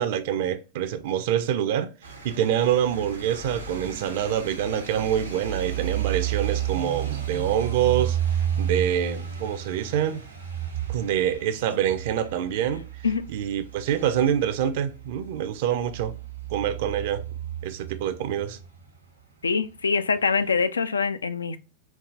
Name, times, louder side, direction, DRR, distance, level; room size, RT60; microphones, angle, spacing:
voice 1, 0.0-1.9 2.2-8.2 8.6-10.2 10.9-12.9 13.3-16.2 16.5-17.2 17.6-18.6, right 10 dB, 50° right, 0.5 m, -26 dB
sound 1, 2.0-19.3 19.6-20.5, right 9 dB, 80° right, 1.1 m, -33 dB
voice 2, 19.4-21.6, left 5 dB, 75° left, 0.3 m, -24 dB
4.7 x 2.5 x 2.5 m
figure-of-eight pair, 90°, 0 cm